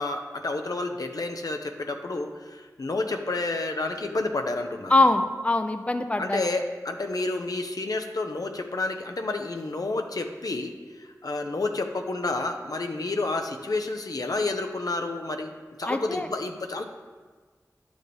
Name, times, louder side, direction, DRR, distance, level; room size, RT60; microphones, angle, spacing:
voice 1, 0.0-4.9 6.2-10.7 11.0-15.5 15.8-16.8, left 2 dB, 75° left, 5 dB, 0.7 m, -30 dB
voice 2, 4.9-6.5 15.8-16.3, left 2 dB, 20° left, 8 dB, 0.5 m, -23 dB
10.0 x 6.3 x 3.5 m, 1.4 s
wide cardioid pair, 45°, 6 cm